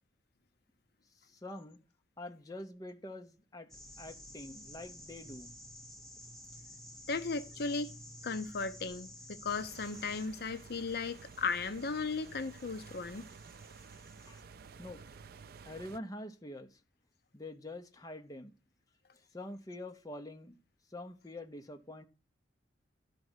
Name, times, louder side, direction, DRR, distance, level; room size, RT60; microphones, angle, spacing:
voice 1, 1.3-1.8 2.2-3.7 4.0-5.5 14.3-14.4 14.8-15.0 15.7-16.8 17.3-18.5 19.3-20.6 20.9-22.0, left 1 dB, 20° left, 0.8 m, -45 dB
sound 1, 3.7-14.4, equal, ahead, 1.3 m, -52 dB
voice 2, 7.1-7.9 8.2-13.3, left 4 dB, 55° left, 0.6 m, -36 dB
sound 2, 9.5-16.0, right 5 dB, 50° right, 0.4 m, -53 dB
12.0 x 5.3 x 6.2 m
head